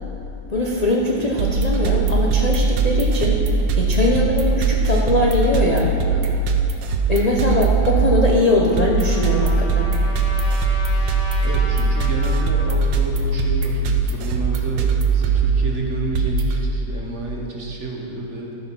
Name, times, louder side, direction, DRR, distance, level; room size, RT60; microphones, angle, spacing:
voice 1, 0.5-5.9 7.1-9.9, left 1 dB, 50° left, -2 dB, 0.4 m, -21 dB
sound 1, 1.4-16.6, right 4 dB, 80° right, 1.4 m, -20 dB
Trumpet, 8.1-12.8, left 1 dB, 70° left, 2.2 m, -36 dB
voice 2, 11.4-18.6, right 2 dB, 45° right, -1 dB, 1.3 m, -30 dB
13.0 x 5.8 x 5.9 m, 2.7 s
omnidirectional pair, 2.0 m